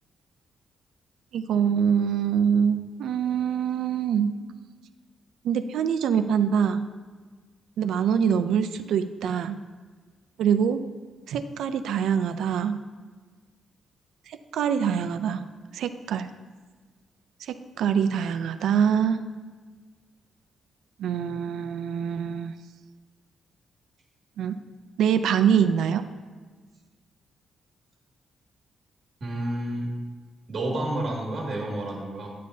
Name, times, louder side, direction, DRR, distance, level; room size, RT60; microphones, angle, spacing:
voice 1, 1.3-4.3 5.4-6.9 7.8-9.6 10.4-10.8 11.3-12.8 14.3-15.4 15.7-16.3 17.5-19.2 21.0-22.5 24.4-24.6 25.0-26.0, right 7 dB, 90° right, 10 dB, 0.4 m, -24 dB
voice 2, 29.2-29.9 30.5-32.3, right 1 dB, 40° right, -2 dB, 2.0 m, -30 dB
9.3 x 8.5 x 2.7 m, 1.4 s
wide cardioid pair, 170°, 0 cm